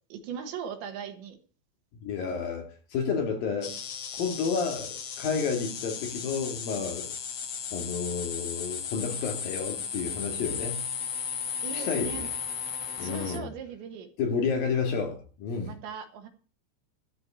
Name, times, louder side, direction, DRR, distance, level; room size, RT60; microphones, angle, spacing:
voice 1, 0.1-1.4 11.6-12.3 13.0-14.1 15.7-16.3, right 7 dB, 75° right, 3.9 m, -38 dB
voice 2, 2.0-3.7 4.1-7.1 7.7-10.9 11.7-12.3 13.0-13.5 14.2-15.7, left 5 dB, 55° left, 3.6 m, -31 dB
sound 1, 3.6-13.4, left 7 dB, 75° left, 1.4 m, -35 dB
13.0 x 6.1 x 8.7 m
omnidirectional pair, 5.2 m